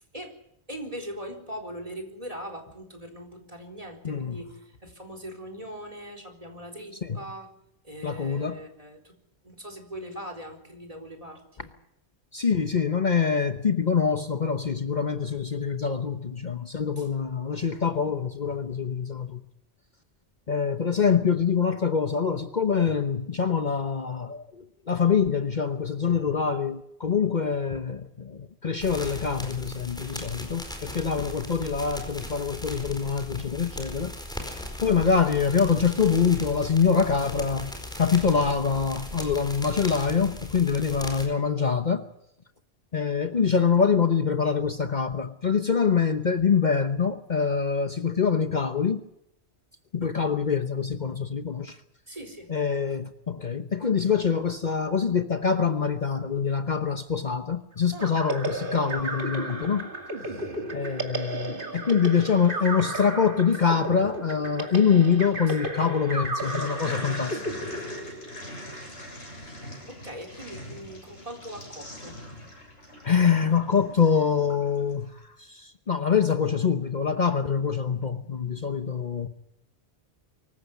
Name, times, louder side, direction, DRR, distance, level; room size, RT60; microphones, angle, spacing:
voice 1, 0.7-7.5 7.8-9.1 9.4-11.7 17.0-17.1 52.1-52.5 57.9-58.2 60.7-61.1 65.5-65.6 69.9-72.2, equal, 35° right, 4.1 m, -41 dB
voice 2, 4.0-4.4 7.0-7.2 8.0-8.6 12.3-19.4 20.5-34.1 34.6-42.1 42.9-49.0 49.9-51.8 52.5-59.9 60.7-67.6 73.0-79.3, left 6 dB, 45° left, 1.1 m, -25 dB
sound 1, 28.8-41.3, left 1 dB, 5° left, 4.6 m, -38 dB
sound 2, 58.0-68.6, right 2 dB, 50° right, 2.7 m, -34 dB
sound 3, 66.4-75.0, left 1 dB, 90° left, 7.5 m, -41 dB
24.5 x 15.0 x 8.4 m
omnidirectional pair, 1.1 m